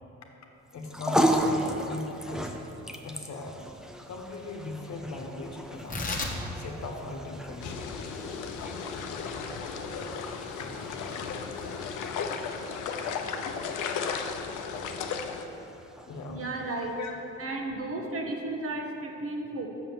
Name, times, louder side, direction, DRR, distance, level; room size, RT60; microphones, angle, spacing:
voice 1, 0.7-2.7 3.0-3.6 4.1-6.0 6.6-7.9 10.6-10.7 16.1-16.4 16.9-17.2, left 3 dB, 65° left, 2 dB, 1.1 m, -39 dB
sound 1, 0.7-17.2, equal, ahead, 0.5 m, -35 dB
Tearing, 5.7-12.5, left 2 dB, 25° left, 1.2 m, -40 dB
sound 2, 7.6-15.4, left 6 dB, 85° left, 0.6 m, -35 dB
voice 2, 16.3-17.0 17.4-19.7, right 2 dB, 50° right, 1 dB, 1.2 m, -34 dB
6.5 x 5.7 x 7.2 m, 2.9 s
cardioid pair, 90°, 30 cm